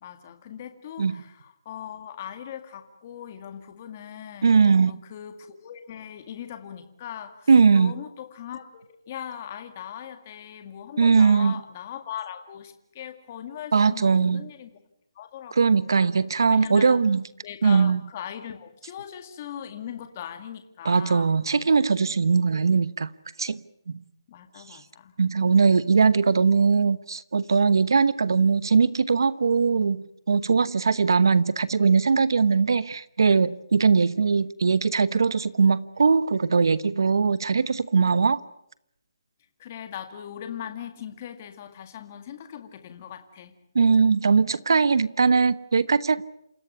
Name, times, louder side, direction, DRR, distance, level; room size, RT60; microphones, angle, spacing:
voice 1, 0.0-7.5 7.7-14.7 15.2-16.0 16.5-17.0 17.4-21.3 24.3-25.2 39.6-43.5, left 9 dB, 25° left, 2.0 m, -40 dB
voice 2, 4.4-5.0 7.5-7.9 11.0-11.6 13.7-14.4 15.6-17.2 17.6-18.0 20.8-23.1 23.4-23.6 23.9-24.0 25.2-38.4 43.7-46.2, right 5 dB, 60° right, 1.1 m, -20 dB
28.0 x 16.0 x 9.8 m
hypercardioid pair, 165°, 2 cm